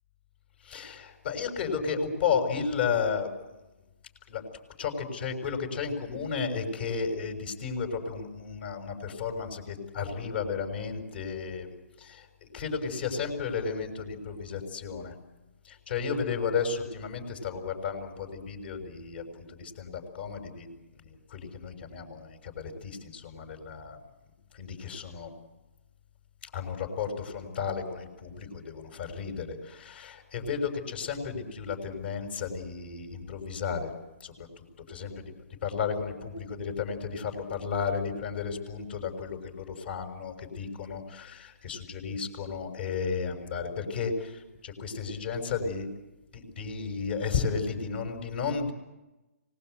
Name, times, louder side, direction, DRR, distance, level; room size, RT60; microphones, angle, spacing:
voice 1, 0.6-3.3 4.3-4.4 4.8-11.7 12.0-15.1 15.6-20.7 21.0-24.0 24.5-25.3 26.5-33.9 34.2-35.2 35.6-45.9 46.3-48.7, left 5 dB, 45° left, 4 dB, 6.4 m, -33 dB
25.0 x 20.0 x 8.2 m, 1.0 s
hypercardioid pair, 155°, 8 cm